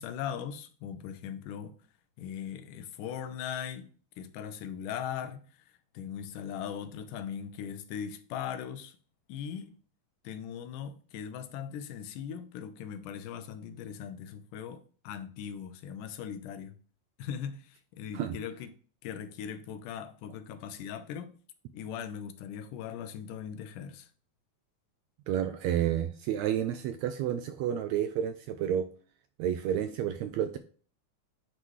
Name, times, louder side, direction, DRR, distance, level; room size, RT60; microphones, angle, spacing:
voice 1, 0.0-1.7 2.2-3.9 4.2-5.4 5.9-9.0 9.3-9.8 10.2-16.7 17.2-18.7 19.0-21.4 21.7-24.1, left 8 dB, 85° left, 2.3 m, -39 dB
voice 2, 25.3-28.9 29.4-30.6, right 10 dB, 80° right, 1.6 m, -30 dB
9.6 x 3.8 x 3.1 m
omnidirectional pair, 3.6 m